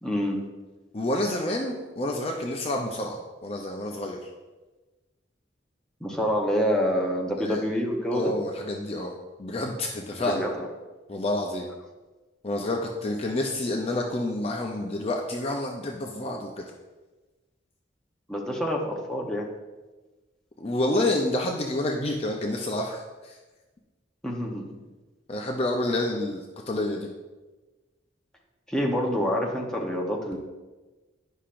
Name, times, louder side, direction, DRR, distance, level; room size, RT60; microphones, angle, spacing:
voice 1, 0.0-0.4 6.0-8.3 10.2-10.7 18.3-19.5 24.2-24.7 28.7-30.4, equal, 5° left, -2 dB, 0.8 m, -27 dB
voice 2, 0.9-4.2 7.4-7.6 8.1-10.4 11.1-11.7 12.4-16.6 20.6-23.4 25.3-27.1, left 1 dB, 35° left, 1 dB, 0.5 m, -29 dB
10.0 x 5.6 x 2.5 m, 1.2 s
head